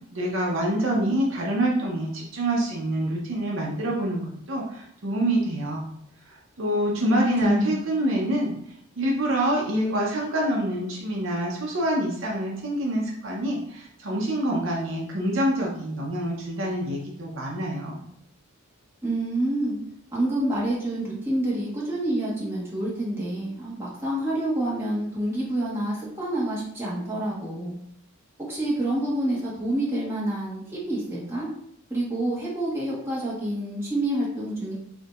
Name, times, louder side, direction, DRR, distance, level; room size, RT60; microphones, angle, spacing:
voice 1, 0.1-5.8 6.3-18.0, right 1 dB, 60° right, -2 dB, 0.8 m, -26 dB
voice 2, 7.0-7.7 19.0-19.8 20.1-27.7 28.4-31.5 31.9-34.7, right 1 dB, 10° right, -6 dB, 1.3 m, -27 dB
5.9 x 2.7 x 2.5 m, 0.70 s
head